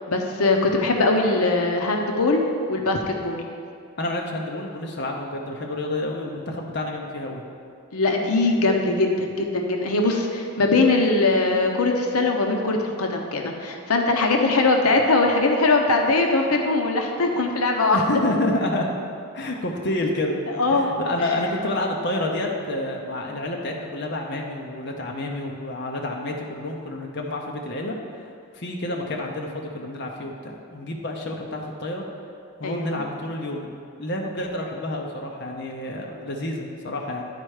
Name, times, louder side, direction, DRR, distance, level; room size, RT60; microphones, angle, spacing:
voice 1, 0.1-3.4 7.9-18.0 20.5-20.9 32.6-33.0, left 3 dB, 80° left, 2 dB, 0.7 m, -21 dB
voice 2, 4.0-7.4 17.9-18.9 19.3-20.4 20.7-28.0 28.5-32.0 32.6-33.7 34.0-37.3, left 1 dB, 50° left, 0 dB, 0.7 m, -29 dB
10.5 x 4.4 x 4.8 m, 2.3 s
head